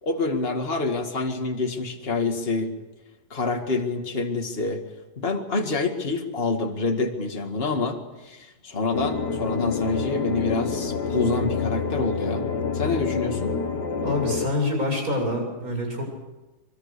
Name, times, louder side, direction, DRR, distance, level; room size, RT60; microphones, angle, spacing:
voice 1, 0.0-2.7 3.3-4.8 5.2-12.5 12.7-13.5, left 3 dB, 35° left, 3 dB, 2.3 m, -27 dB
sound 1, 8.9-14.5, left 5 dB, 80° left, 2.2 m, -28 dB
voice 2, 14.0-16.1, left 1 dB, 55° right, 1 dB, 7.6 m, -26 dB
24.0 x 24.0 x 6.8 m, 1.1 s
omnidirectional pair, 1.8 m